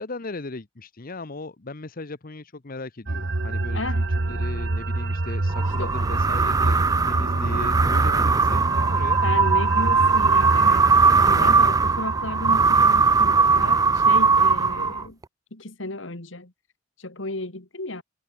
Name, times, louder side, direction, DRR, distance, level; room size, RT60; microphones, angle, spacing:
voice 1, 0.0-9.2, left 2 dB, 45° left, 1.0 m, -37 dB
sound 1, 3.1-13.9, right 2 dB, 60° right, 1.2 m, -27 dB
voice 2, 3.7-4.0 5.8-5.9 9.2-10.9 11.2-15.2 15.5-16.5 17.0-18.0, left 2 dB, 75° left, 2.6 m, -33 dB
sound 2, 5.5-15.2, right 4 dB, 20° right, 0.4 m, -20 dB
head